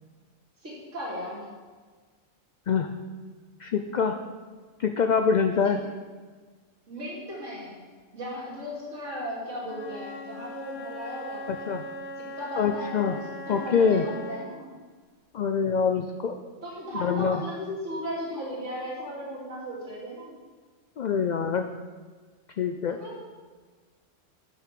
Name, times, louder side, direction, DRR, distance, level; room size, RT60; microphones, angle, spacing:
voice 1, 0.6-1.4 6.9-7.8 8.1-11.8 12.2-13.1 13.5-14.7 16.6-20.3 23.0-23.2, equal, 70° right, -7 dB, 3.1 m, -36 dB
voice 2, 3.6-4.2 4.8-5.8 11.5-11.8 12.6-13.2 13.5-14.1 15.3-16.4 17.0-17.4 21.0-21.7 22.6-23.0, left 6 dB, 90° left, 6 dB, 0.4 m, -25 dB
Wind instrument woodwind instrument, 9.6-14.6, left 1 dB, 60° left, 1.0 m, -40 dB
6.8 x 6.3 x 6.7 m, 1.4 s
omnidirectional pair, 1.3 m